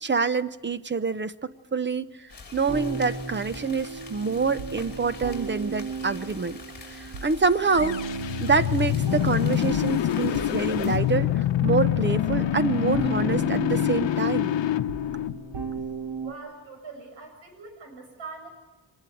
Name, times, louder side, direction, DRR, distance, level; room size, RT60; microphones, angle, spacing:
voice 1, 0.0-6.6 6.9-8.0 8.4-14.5, right 4 dB, 25° right, 14 dB, 0.7 m, -26 dB
sound 1, 2.3-11.0, left 4 dB, 25° left, 5.3 m, -45 dB
sound 2, 2.7-16.3, right 4 dB, 65° right, 2.1 m, -36 dB
sound 3, 7.7-15.8, left 12 dB, 75° left, 0.9 m, -25 dB
voice 2, 16.2-18.5, right 4 dB, 85° right, 5 dB, 7.2 m, -42 dB
25.0 x 20.5 x 9.1 m, 1.1 s
wide cardioid pair, 160°, 44 cm